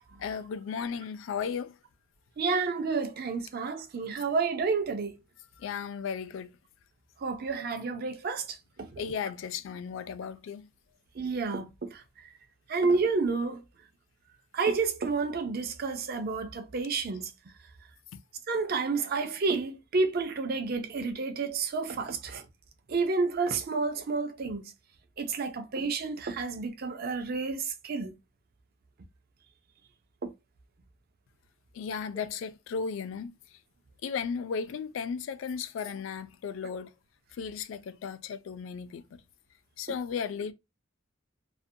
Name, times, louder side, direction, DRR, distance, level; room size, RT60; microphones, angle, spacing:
voice 1, 0.2-1.7 5.6-6.5 9.0-10.7 31.7-33.3 34.0-36.9 37.4-39.2 39.8-40.5, left 6 dB, 70° left, 0.3 m, -35 dB
voice 2, 2.4-5.2 7.2-8.6 8.9-9.1 11.2-12.0 12.7-13.6 14.5-17.3 18.5-22.4 22.9-24.7 25.2-28.2 30.2-30.3, right 4 dB, 50° right, 0.4 m, -30 dB
2.5 x 2.1 x 2.6 m
head